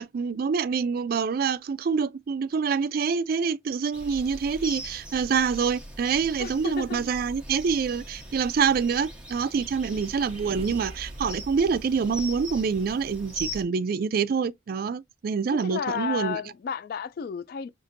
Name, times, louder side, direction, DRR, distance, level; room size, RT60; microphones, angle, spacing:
voice 1, 0.0-16.4, right 6 dB, 55° right, 0.3 m, -26 dB
sound 1, 3.9-13.6, equal, 5° right, 1.1 m, -40 dB
voice 2, 6.4-7.1 15.5-17.7, left 7 dB, 55° left, 0.3 m, -32 dB
sound 2, 9.6-13.1, right 1 dB, 35° right, 0.9 m, -46 dB
6.5 x 2.5 x 2.6 m
head